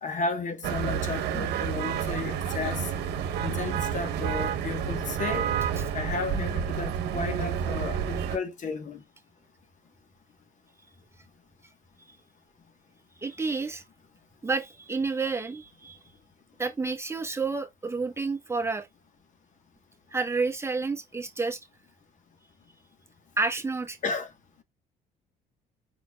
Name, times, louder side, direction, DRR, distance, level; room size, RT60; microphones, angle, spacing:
voice 1, 0.0-2.9 3.4-5.5 5.9-9.0 24.0-24.3, left 4 dB, 45° left, 1.2 m, -33 dB
sound 1, 0.6-8.4, right 8 dB, 75° right, 1.0 m, -29 dB
voice 2, 13.2-13.8 14.4-16.0 16.6-18.9 20.1-21.6 23.4-24.0, right 4 dB, 15° right, 1.1 m, -30 dB
5.2 x 4.3 x 2.3 m
cardioid pair, 110°, 17 cm